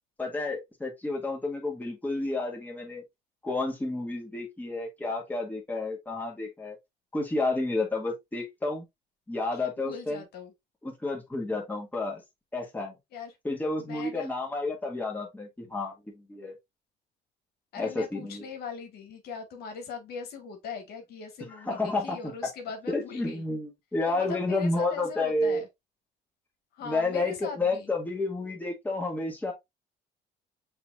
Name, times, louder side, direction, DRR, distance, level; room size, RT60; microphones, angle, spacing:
voice 1, 0.2-3.0 3.4-6.8 7.1-8.9 9.3-10.2 10.8-12.2 12.5-12.9 13.4-16.5 17.8-18.4 21.5-22.3 22.9-25.6 26.8-29.5, left 2 dB, 10° left, 1.8 m, -30 dB
voice 2, 9.5-10.5 13.1-13.4 13.8-14.3 17.7-23.4 24.1-25.7 26.7-27.9, left 6 dB, 70° left, 1.5 m, -40 dB
6.7 x 3.1 x 2.4 m
cardioid pair, 110°, 17 cm